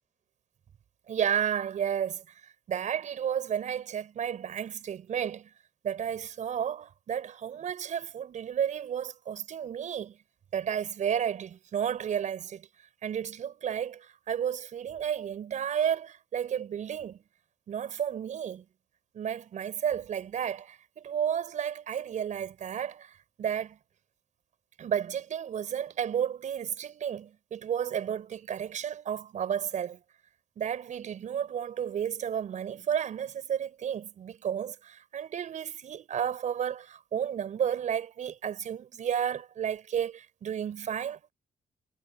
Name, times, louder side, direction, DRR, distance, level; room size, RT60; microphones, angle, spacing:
voice 1, 1.1-2.4 2.7-5.5 5.8-10.2 10.5-12.7 13.0-17.2 17.7-18.6 19.1-23.8 24.8-30.0 30.6-41.3, right 9 dB, 60° right, 6.3 m, -32 dB
cardioid pair, 145°, 14 cm